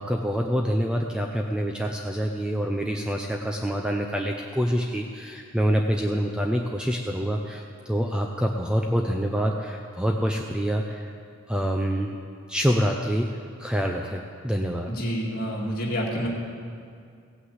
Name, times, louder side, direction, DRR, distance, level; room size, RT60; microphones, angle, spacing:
voice 1, 0.0-11.1 11.5-12.1 12.5-13.3 13.6-14.9, equal, 5° right, 2 dB, 0.4 m, -26 dB
voice 2, 14.9-16.3, equal, 45° left, -3 dB, 2.1 m, -28 dB
16.0 x 5.9 x 7.9 m, 2.3 s
head